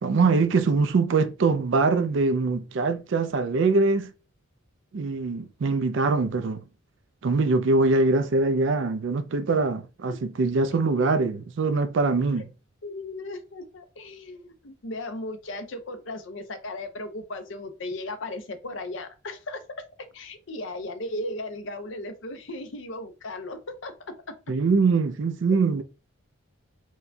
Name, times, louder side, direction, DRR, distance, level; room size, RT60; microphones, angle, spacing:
voice 1, 0.0-4.1 4.9-6.6 7.2-12.5 24.5-25.8, right 3 dB, 55° right, 0.4 m, -23 dB
voice 2, 12.8-19.6 20.1-23.9, left 2 dB, 60° left, 0.6 m, -36 dB
4.6 x 2.2 x 2.6 m
head